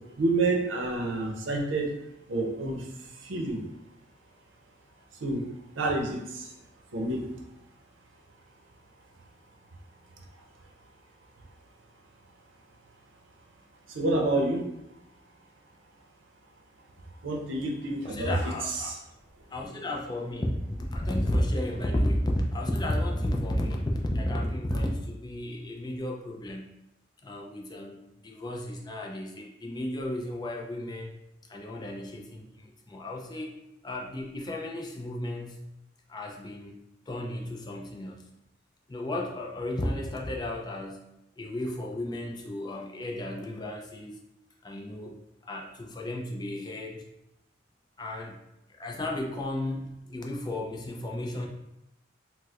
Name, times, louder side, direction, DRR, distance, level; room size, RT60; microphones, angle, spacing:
voice 1, 0.2-1.9 2.3-2.9 3.2-3.6 5.2-5.4 5.8-6.5 6.9-7.2 13.9-14.6 17.2-18.4 18.7-19.0, right 2 dB, 90° right, 1 dB, 0.6 m, -28 dB
voice 2, 18.0-18.9 19.5-26.7 27.2-31.1 31.5-33.5 33.8-35.6 36.1-36.8 37.1-38.2 38.9-41.1 41.4-44.2 44.6-45.1 45.4-47.1 48.0-48.4 48.8-51.5, left 1 dB, 20° left, 0 dB, 0.4 m, -33 dB
4.3 x 2.1 x 2.4 m, 0.86 s
head